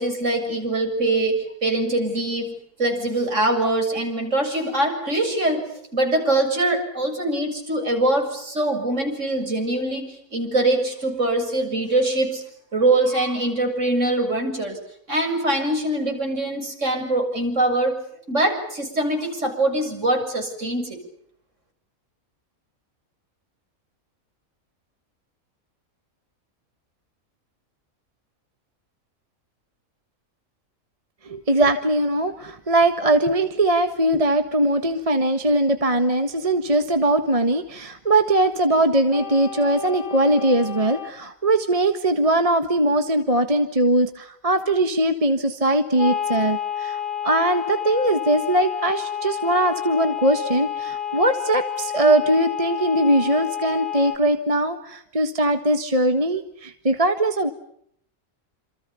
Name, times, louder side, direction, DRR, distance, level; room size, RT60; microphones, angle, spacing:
voice 1, 0.0-12.4 12.7-14.8 15.1-18.0 18.3-21.0, right 2 dB, 60° right, 3 dB, 7.5 m, -23 dB
voice 2, 31.2-57.5, right 1 dB, 25° right, 8 dB, 1.6 m, -21 dB
sound 1, 39.1-41.1 46.0-54.2, left 9 dB, 35° left, 3.0 m, -30 dB
28.0 x 27.5 x 7.1 m, 0.69 s
omnidirectional pair, 1.5 m